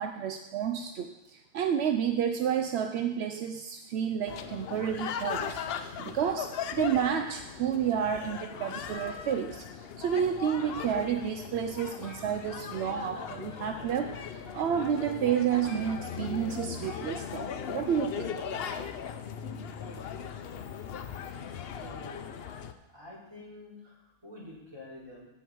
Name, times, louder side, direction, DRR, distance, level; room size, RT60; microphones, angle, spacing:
voice 1, 0.0-18.4, right 8 dB, 80° right, 6 dB, 0.8 m, -30 dB
sound 1, 4.3-22.7, left 7 dB, 65° left, 0.8 m, -38 dB
sound 2, 10.6-11.3 12.0-13.0 13.3-13.6 14.4-14.5 15.0-15.1 15.3-15.4 15.6-16.3 16.8-17.2 17.5-17.6, left 1 dB, 15° left, 1.4 m, -50 dB
voice 2, 21.8-22.3 22.9-25.3, left 2 dB, 25° right, -6 dB, 3.2 m, -47 dB
15.0 x 5.1 x 4.6 m, 0.95 s
omnidirectional pair, 1.1 m